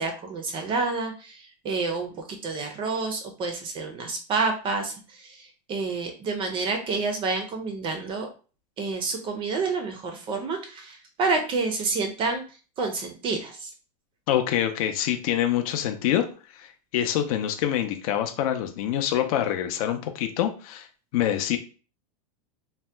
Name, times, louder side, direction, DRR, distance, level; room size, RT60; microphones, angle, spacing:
voice 1, 0.0-8.3 8.8-13.7, right 4 dB, 25° right, 5 dB, 0.4 m, -29 dB
voice 2, 14.3-16.3 16.5-20.9 21.1-21.6, left 11 dB, 60° left, 6 dB, 0.5 m, -25 dB
2.7 x 2.1 x 3.2 m, 0.37 s
supercardioid pair, 150°, 21 cm